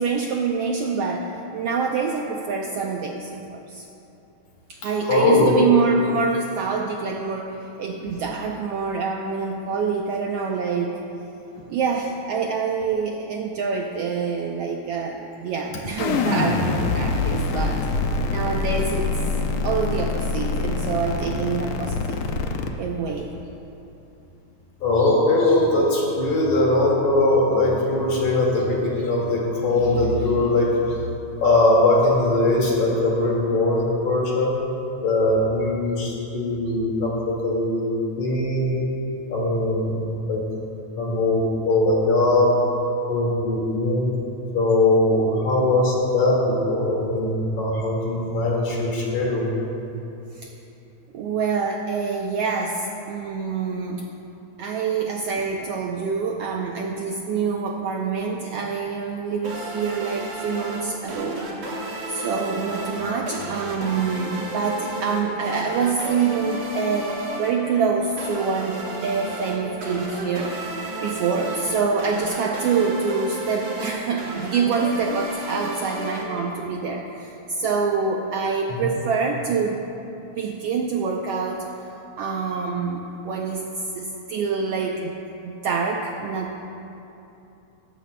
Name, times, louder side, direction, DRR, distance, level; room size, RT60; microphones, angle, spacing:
voice 1, 0.0-3.9 4.7-11.0 11.7-17.8 18.3-19.1 19.6-22.2 22.7-23.3 50.3-50.5 51.1-54.1 54.6-61.5 62.1-67.1 67.4-79.8 80.2-81.8 82.2-85.1 85.4-86.7, right 5 dB, 75° right, 1 dB, 1.4 m, -26 dB
voice 2, 5.1-5.6 8.1-8.2 24.8-31.0 31.4-34.6 35.0-38.8 39.3-40.4 41.0-42.5 43.1-44.1 44.5-49.5 78.7-78.9, left 2 dB, 75° left, -3 dB, 3.5 m, -21 dB
sound 1, 16.0-22.7, left 4 dB, 90° left, 1.1 m, -25 dB
sound 2, 59.4-76.9, right 2 dB, 45° right, 2.3 m, -33 dB
17.5 x 15.0 x 2.2 m, 2.9 s
omnidirectional pair, 3.4 m